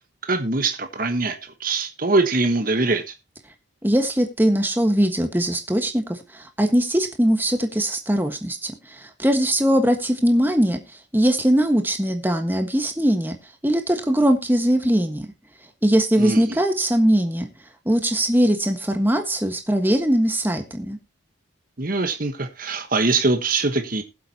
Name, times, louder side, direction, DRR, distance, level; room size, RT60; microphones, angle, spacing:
voice 1, 0.3-3.0 16.2-16.6 21.8-24.0, right 3 dB, 45° right, 1.2 m, -23 dB
voice 2, 3.8-10.8 11.1-13.4 13.6-15.3 15.8-17.5 17.8-21.0, equal, 10° right, 1.4 m, -21 dB
20.0 x 7.7 x 2.8 m
head